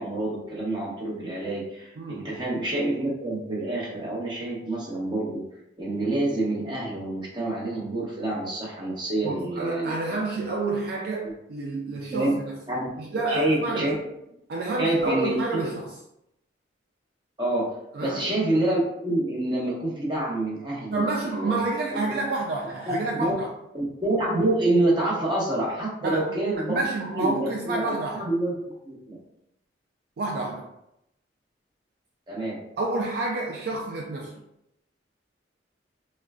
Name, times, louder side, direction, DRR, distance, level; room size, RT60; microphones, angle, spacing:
voice 1, 0.0-5.4 5.8-10.4 11.2-11.3 12.1-12.4 12.7-12.9 13.3-14.0 14.8-15.8 17.4-21.6 21.9-22.2 22.9-23.3 23.7-26.8 27.1-28.5 28.8-29.2 32.3-32.6, right 1 dB, 25° right, -5 dB, 0.8 m, -27 dB
voice 2, 2.0-2.3 9.2-12.6 13.0-13.9 14.5-16.0 17.9-18.3 20.9-23.5 26.0-26.3 26.7-28.3 30.2-30.7 32.8-34.3, right 2 dB, 55° right, 0 dB, 0.3 m, -29 dB
3.7 x 2.1 x 2.3 m, 0.80 s
head